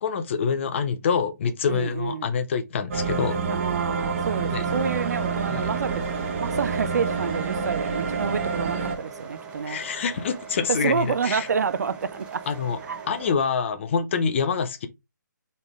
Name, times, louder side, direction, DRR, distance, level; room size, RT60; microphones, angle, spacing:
voice 1, 0.0-3.4 4.4-4.6 5.5-5.6 9.7-11.5 12.5-12.8 13.1-14.9, left 6 dB, 40° left, 0.7 m, -26 dB
voice 2, 1.6-2.3 3.5-9.8 10.7-12.5 12.8-13.0, right 6 dB, 60° right, 0.5 m, -29 dB
sound 1, 2.9-9.0, right 5 dB, 40° right, 1.1 m, -28 dB
sound 2, 4.6-13.3, right 5 dB, 10° right, 0.8 m, -41 dB
4.1 x 3.5 x 3.5 m
figure-of-eight pair, 150°, 10 cm